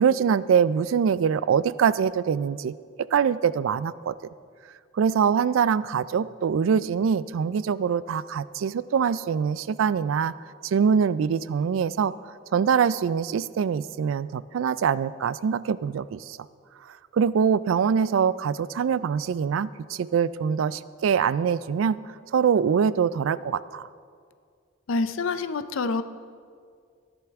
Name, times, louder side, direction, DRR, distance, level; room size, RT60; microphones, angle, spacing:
voice 1, 0.0-4.2 4.9-10.3 10.6-12.1 12.5-16.4 17.1-22.0 22.3-23.9, right 7 dB, 80° right, 17 dB, 0.3 m, -24 dB
voice 2, 24.9-26.0, left 3 dB, 85° left, 12 dB, 0.5 m, -26 dB
14.0 x 11.0 x 3.5 m, 2.1 s
head